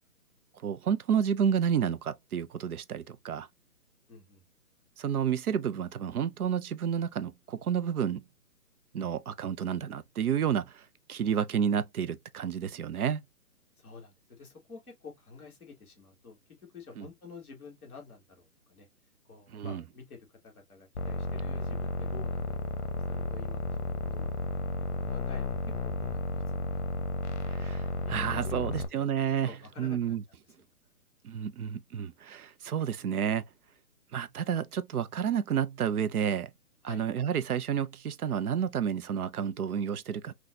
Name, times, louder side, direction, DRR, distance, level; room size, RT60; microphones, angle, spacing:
voice 1, 0.6-3.5 5.0-8.2 8.9-13.2 17.0-17.1 19.5-19.8 27.5-30.2 31.2-33.4 34.1-36.5 36.8-40.3, right 8 dB, 75° right, 0.6 m, -30 dB
voice 2, 4.1-4.4 13.8-18.9 19.3-24.7 25.1-25.5 25.8-27.6 28.3-29.0 29.4-30.2 36.8-37.0, left 4 dB, 10° left, 0.6 m, -50 dB
sound 1, 20.9-28.9, left 2 dB, 50° left, 0.7 m, -33 dB
3.9 x 2.4 x 2.4 m
hypercardioid pair, 165°, 45 cm